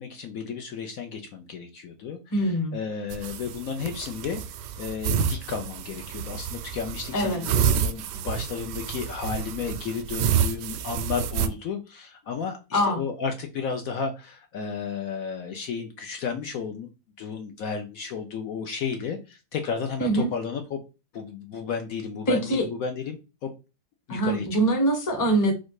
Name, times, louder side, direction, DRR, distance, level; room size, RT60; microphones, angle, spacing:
voice 1, 0.0-4.4 4.8-16.9 17.2-20.8 21.1-23.5 24.1-24.5, left 6 dB, 65° left, 6 dB, 1.0 m, -33 dB
voice 2, 2.3-2.8 7.1-7.4 12.7-13.0 20.0-20.3 22.3-22.7 24.1-25.5, right 1 dB, 15° left, 4 dB, 0.7 m, -23 dB
sound 1, 3.1-11.5, right 8 dB, 80° right, 1.2 m, -29 dB
4.3 x 2.4 x 4.6 m, 0.29 s
omnidirectional pair, 1.8 m